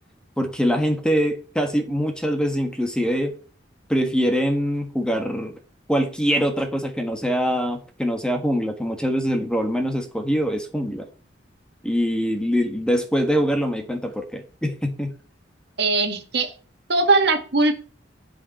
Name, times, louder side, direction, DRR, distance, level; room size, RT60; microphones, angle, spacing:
voice 1, 0.4-3.3 3.9-5.6 5.9-11.1 11.8-15.1, equal, 5° left, 1.4 m, -23 dB
voice 2, 15.8-16.5 16.9-17.8, right 3 dB, 65° right, 1.8 m, -20 dB
16.0 x 5.4 x 4.3 m
head